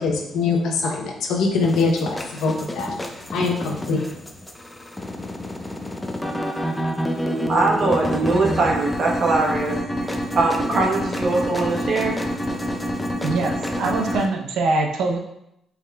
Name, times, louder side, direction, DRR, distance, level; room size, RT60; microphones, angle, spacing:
voice 1, 0.0-3.0 3.3-4.1, left 4 dB, 80° left, 2 dB, 0.7 m, -23 dB
sound 1, 1.6-14.3, equal, 10° left, 0.4 m, -28 dB
voice 2, 7.2-9.7 10.0-12.2, right 3 dB, 45° right, -2 dB, 1.0 m, -22 dB
voice 3, 13.2-15.2, right 3 dB, 80° right, 2 dB, 0.6 m, -23 dB
4.6 x 3.4 x 2.2 m, 0.80 s
cardioid pair, 90°, 0 cm